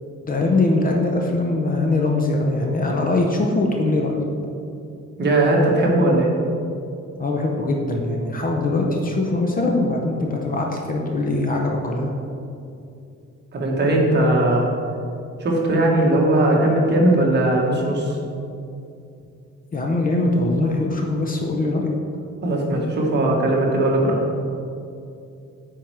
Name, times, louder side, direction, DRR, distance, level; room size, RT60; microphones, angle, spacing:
voice 1, 0.3-4.2 7.2-12.1 19.7-21.9, left 2 dB, 30° left, 1 dB, 0.7 m, -22 dB
voice 2, 5.2-6.3 13.5-14.7 15.4-18.2 22.4-24.2, right 1 dB, 35° right, -2 dB, 1.4 m, -18 dB
8.5 x 4.6 x 4.6 m, 2.6 s
cardioid pair, 160°, 29 cm